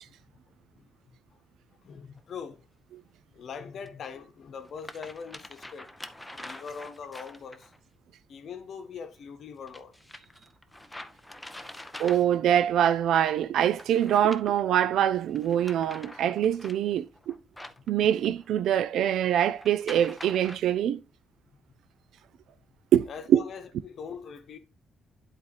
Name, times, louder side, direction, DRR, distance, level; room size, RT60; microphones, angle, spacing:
voice 1, 1.8-2.6 3.3-5.9 6.4-7.7 8.3-9.9 23.1-24.6, left 6 dB, 55° left, 0.9 m, -42 dB
sound 1, 2.2-2.3 3.9-4.0 4.6-7.8 9.7-12.6 13.6-14.8 15.3-18.5 19.5-20.6, left 1 dB, 5° left, 0.5 m, -45 dB
voice 2, 12.0-17.4 17.9-21.0 22.9-23.4, right 10 dB, 80° right, 0.4 m, -24 dB
10.5 x 4.0 x 3.2 m
cardioid pair, 160°, 0 cm